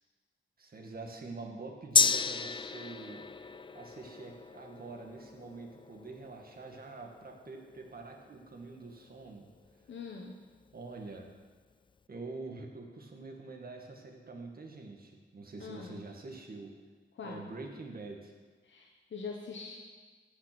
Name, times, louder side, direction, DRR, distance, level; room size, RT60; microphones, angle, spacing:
voice 1, 0.6-3.3 3.7-9.5 10.7-11.3 12.1-16.7 17.2-18.3, right 3 dB, 50° right, 2 dB, 2.0 m, -45 dB
Gong, 2.0-9.7 10.1-10.2, left 5 dB, 25° left, 0.4 m, -34 dB
voice 2, 9.9-10.3 15.6-16.0 17.1-17.5 18.6-19.8, left 5 dB, 75° left, 0 dB, 1.2 m, -43 dB
16.0 x 5.9 x 6.1 m, 1.4 s
wide cardioid pair, 85°, 20 cm